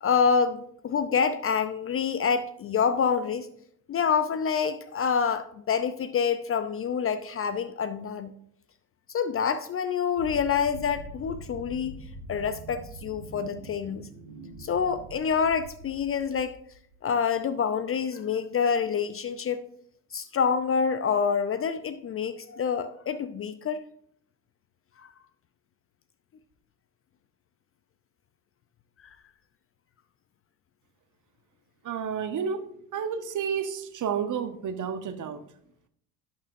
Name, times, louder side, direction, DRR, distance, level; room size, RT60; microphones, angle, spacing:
voice 1, 0.0-3.5 3.9-8.3 9.1-14.1 14.6-16.6 17.0-19.6 20.1-23.8 25.0-25.1, left 6 dB, 30° left, 12 dB, 0.6 m, -27 dB
sound 1, 10.2-17.0, right 2 dB, 75° right, 1.7 m, -44 dB
voice 2, 31.8-32.6 32.9-35.4, right 7 dB, 40° right, 9 dB, 1.2 m, -30 dB
17.0 x 6.0 x 2.7 m, 0.69 s
figure-of-eight pair, 60°, 48 cm